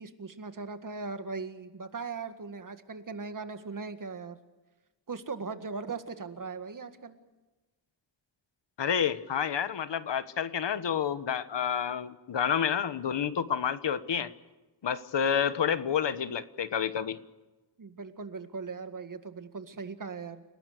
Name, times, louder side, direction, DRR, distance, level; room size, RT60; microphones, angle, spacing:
voice 1, 0.0-4.4 5.1-7.2 17.8-20.4, right 4 dB, 45° right, 9 dB, 1.9 m, -39 dB
voice 2, 8.8-14.3 14.8-17.2, left 8 dB, 70° left, 13 dB, 1.3 m, -29 dB
29.5 x 18.5 x 6.7 m, 1.1 s
wide cardioid pair, 155°, 44 cm